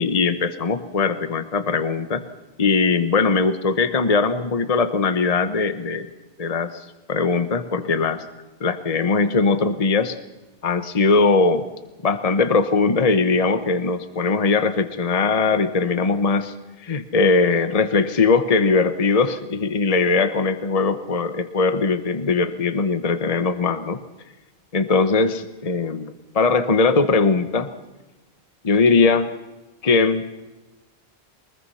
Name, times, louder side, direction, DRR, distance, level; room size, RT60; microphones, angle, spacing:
voice 1, 0.0-2.2 2.6-6.1 6.4-8.3 8.6-10.2 10.6-11.6 12.0-16.5 16.8-24.0 24.7-27.7 28.6-29.3 29.8-30.2, left 4 dB, 35° left, 11 dB, 1.1 m, -20 dB
23.5 x 20.5 x 5.7 m, 1.1 s
omnidirectional pair, 1.1 m